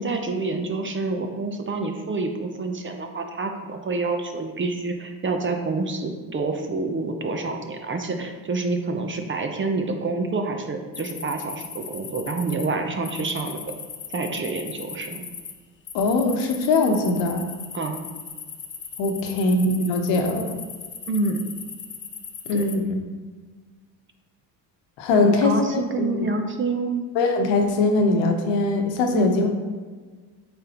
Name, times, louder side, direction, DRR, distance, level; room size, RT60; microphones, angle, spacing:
voice 1, 0.0-13.6 14.1-15.2 17.7-18.0 21.1-21.5 22.5-22.6 25.2-27.1 29.1-29.3, right 3 dB, 25° right, 5 dB, 0.7 m, -27 dB
sound 1, 10.9-12.7 13.0-15.5 15.8-22.8, left 6 dB, 25° left, 0.6 m, -38 dB
voice 2, 15.9-17.5 19.0-20.5 22.5-23.0 25.0-26.3 27.1-29.5, left 3 dB, 75° left, 4 dB, 1.1 m, -21 dB
8.6 x 3.7 x 3.0 m, 1.4 s
supercardioid pair, 85°, 45 cm